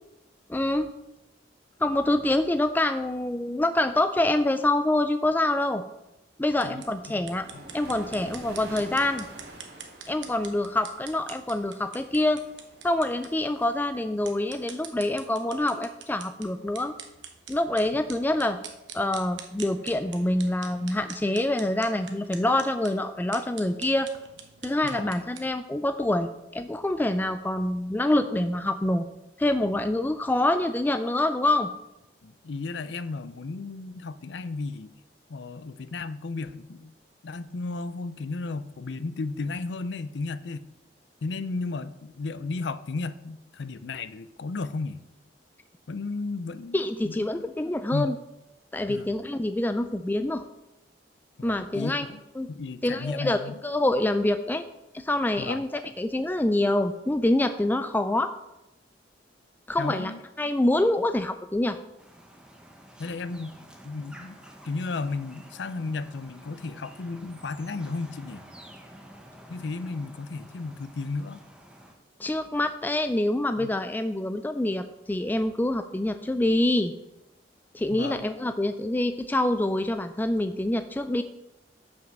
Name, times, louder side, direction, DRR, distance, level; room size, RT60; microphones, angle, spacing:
voice 1, 0.5-0.9 1.8-5.8 6.4-7.5 7.7-9.3 10.1-12.4 12.8-16.9 17.5-18.6 18.9-24.1 24.6-29.1 29.4-31.7 46.7-48.2 48.7-50.4 51.4-52.1 52.4-52.5 52.8-54.6 54.9-58.3 59.7-60.1 60.4-61.8 72.2-76.9 77.7-81.2, left 1 dB, 10° left, 9 dB, 0.4 m, -26 dB
sound 1, 6.5-25.5, right 7 dB, 85° right, 1.1 m, -46 dB
voice 2, 6.6-7.6 24.9-25.2 32.2-34.9 35.3-36.9 37.2-40.7 41.2-45.0 45.9-47.4 47.9-48.1 48.9-49.1 51.4-52.2 52.5-53.6 55.4-55.6 59.8-60.2 63.0-63.6 63.8-64.4 64.6-68.4 69.5-71.4 73.6-73.7 77.9-78.3, left 3 dB, 70° left, 14 dB, 0.5 m, -34 dB
sound 2, 6.8-13.9, right 1 dB, 65° right, 2.3 m, -47 dB
sound 3, 62.0-71.9, right 1 dB, 5° right, 1.1 m, -49 dB
7.4 x 6.1 x 6.0 m, 0.91 s
head